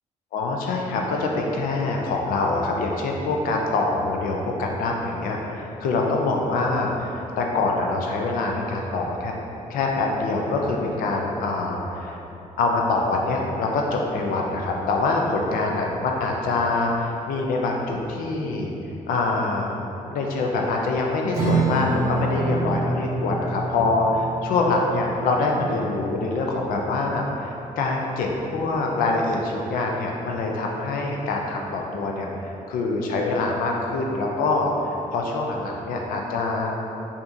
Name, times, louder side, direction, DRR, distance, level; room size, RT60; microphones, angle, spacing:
voice 1, 0.3-9.3 9.7-12.2 12.6-18.7 19.1-19.7 20.0-36.8, left 3 dB, 80° left, 0 dB, 0.4 m, -25 dB
Strum, 21.3-28.2, right 3 dB, 25° right, 0.7 m, -28 dB
4.7 x 2.5 x 2.6 m, 2.9 s
cardioid pair, 105°, 14 cm